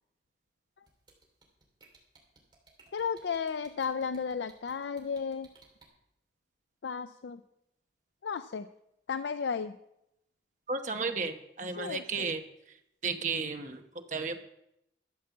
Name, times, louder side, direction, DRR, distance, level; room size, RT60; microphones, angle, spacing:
sound 1, 0.9-5.8, right 4 dB, 25° right, 3.1 m, -59 dB
voice 1, 2.9-5.5 6.8-7.4 8.2-8.7 9.1-9.8 11.8-12.0, left 6 dB, 75° left, 12 dB, 0.4 m, -33 dB
voice 2, 10.7-12.4 13.0-14.4, right 4 dB, 40° right, 5 dB, 1.0 m, -33 dB
13.0 x 7.3 x 7.1 m, 0.83 s
head